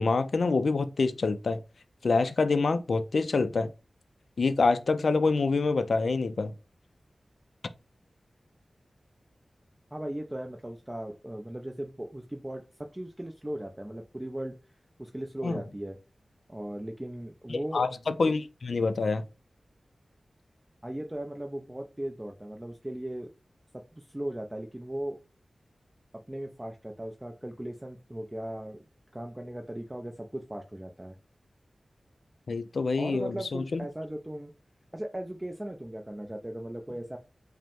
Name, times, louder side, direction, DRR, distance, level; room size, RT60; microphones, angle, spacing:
voice 1, 0.0-1.6 2.0-3.7 4.4-6.5 15.4-15.6 17.5-19.2 32.5-33.8, left 4 dB, 75° left, 0.3 m, -26 dB
voice 2, 9.9-14.5 15.0-16.0 16.5-17.8 20.8-23.3 23.7-25.2 26.3-28.8 29.1-31.2 33.0-34.5 34.9-37.2, right 1 dB, 20° right, 0.5 m, -37 dB
5.0 x 2.1 x 3.5 m
cardioid pair, 55°, 0 cm